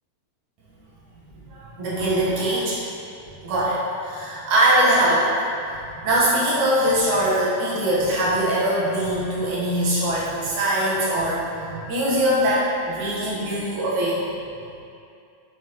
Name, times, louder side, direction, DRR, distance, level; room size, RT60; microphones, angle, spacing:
voice 1, 1.5-2.8 3.4-14.3, right 1 dB, 80° right, -7 dB, 2.8 m, -22 dB
7.2 x 6.5 x 3.1 m, 2.5 s
omnidirectional pair, 3.4 m